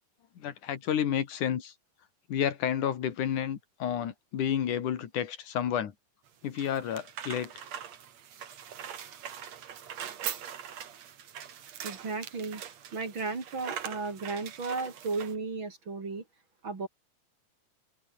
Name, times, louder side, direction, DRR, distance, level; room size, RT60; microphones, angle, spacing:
voice 1, 0.4-1.7 2.3-5.9 6.4-7.5, left 9 dB, 75° left, 3.4 m, -30 dB
sound 1, 6.3-15.4, right 9 dB, 60° right, 3.0 m, -42 dB
voice 2, 11.8-12.6 12.9-16.2 16.6-16.9, right 4 dB, 40° right, 4.0 m, -34 dB
omnidirectional pair, 3.6 m